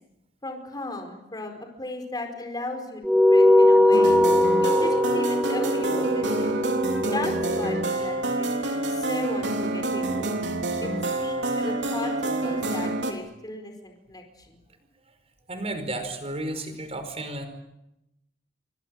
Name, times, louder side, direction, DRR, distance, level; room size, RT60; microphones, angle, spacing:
voice 1, 0.4-4.2 4.6-6.6 7.0-10.3 10.8-10.9 11.2-14.6, left 2 dB, 25° left, 4 dB, 4.6 m, -36 dB
sound 1, 3.0-7.8, left 1 dB, ahead, 2.3 m, -20 dB
sound 2, 3.9-13.1, right 2 dB, 75° right, 3.6 m, -27 dB
voice 2, 15.5-17.5, right 1 dB, 35° right, 9 dB, 5.0 m, -32 dB
28.0 x 25.0 x 7.8 m, 0.87 s
head